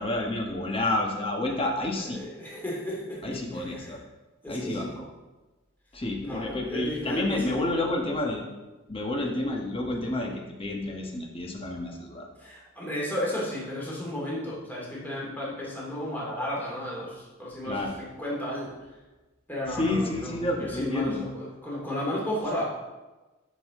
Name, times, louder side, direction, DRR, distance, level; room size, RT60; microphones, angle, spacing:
voice 1, 0.0-2.2 3.2-4.0 4.5-5.1 5.9-8.5 8.9-12.3 17.6-18.0 19.7-21.2, left 2 dB, 25° left, 0 dB, 1.3 m, -29 dB
voice 2, 2.0-4.0 4.4-5.0 6.2-7.8 12.4-18.8 19.5-22.6, left 1 dB, 10° left, -6 dB, 2.3 m, -34 dB
11.5 x 6.6 x 3.7 m, 1.2 s
head